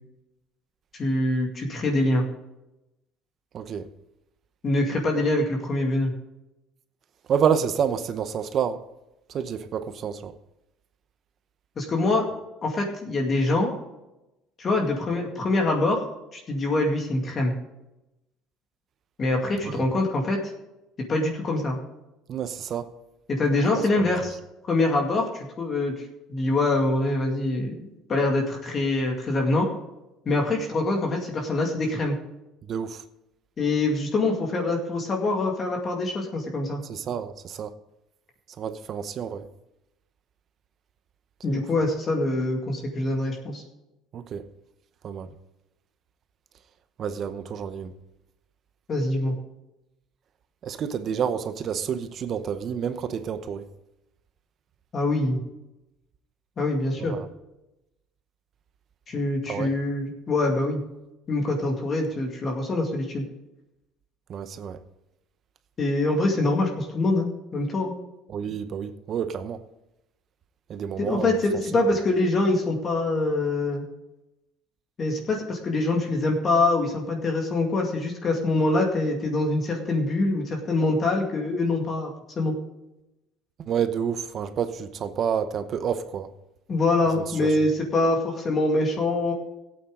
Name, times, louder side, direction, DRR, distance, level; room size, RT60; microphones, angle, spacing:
voice 1, 1.0-2.3 4.6-6.1 11.8-12.3 12.6-13.7 14.6-16.0 16.3-17.5 19.2-20.5 21.1-21.8 23.3-24.4 24.7-25.9 26.3-29.7 30.3-32.2 33.6-36.8 41.4-43.6 48.9-49.3 54.9-55.4 56.6-57.2 59.1-60.8 61.3-63.2 65.8-67.9 71.0-73.8 75.0-82.1 82.4-82.5 86.7-89.3, left 2 dB, 30° left, 2.2 m, -24 dB
voice 2, 3.5-3.9 7.3-8.8 9.3-10.3 19.6-19.8 22.3-22.9 23.8-23.9 32.7-33.0 36.8-37.7 38.6-39.5 41.5-41.7 44.1-44.5 45.0-45.3 47.0-47.9 50.6-53.7 57.0-57.3 59.5-59.7 64.3-64.8 68.3-69.6 70.7-71.4 71.7-71.8 83.6-86.3 87.1-87.5, right 7 dB, 40° right, 0.8 m, -29 dB
17.0 x 8.7 x 3.8 m
cardioid pair, 140°, 0 cm